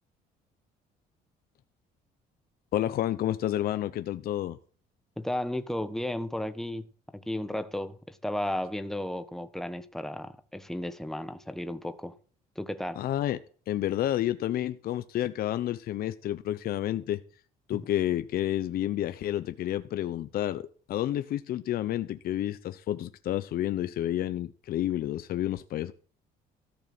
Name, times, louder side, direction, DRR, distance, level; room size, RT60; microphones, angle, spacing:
voice 1, 2.7-4.6 13.0-13.4 13.7-17.2 17.7-25.9, left 12 dB, 60° left, 0.8 m, -30 dB
voice 2, 5.2-12.2 12.5-13.0 17.7-17.8, left 1 dB, ahead, 1.2 m, -34 dB
14.0 x 6.7 x 7.8 m
cardioid pair, 110°, 17 cm